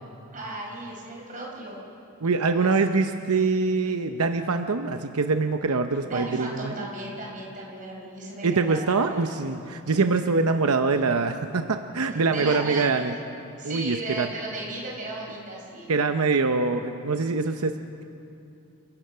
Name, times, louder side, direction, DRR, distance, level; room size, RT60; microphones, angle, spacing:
voice 1, 0.3-1.8 2.5-2.7 6.1-9.2 12.1-12.9 13.6-15.9, right 2 dB, 35° right, -2 dB, 5.1 m, -36 dB
voice 2, 2.2-6.7 8.4-13.1 13.6-14.3 15.9-17.8, right 4 dB, 90° right, 7 dB, 0.8 m, -24 dB
29.0 x 15.5 x 5.7 m, 2.7 s
head